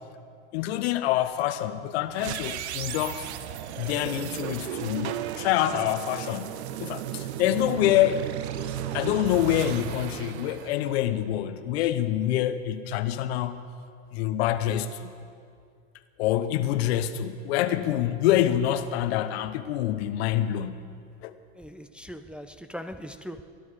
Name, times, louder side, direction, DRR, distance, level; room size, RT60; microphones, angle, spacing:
voice 1, 0.5-3.3 3.7-8.3 8.9-13.6 14.1-15.1 16.2-20.8 21.2-21.3, left 12 dB, 70° left, 12 dB, 0.9 m, -26 dB
sound 1, 2.1-11.4, right 11 dB, 75° right, 0.8 m, -35 dB
voice 2, 21.5-23.4, equal, 5° right, 7 dB, 0.6 m, -40 dB
22.0 x 12.0 x 4.9 m, 2.3 s
hypercardioid pair, 90°, 33 cm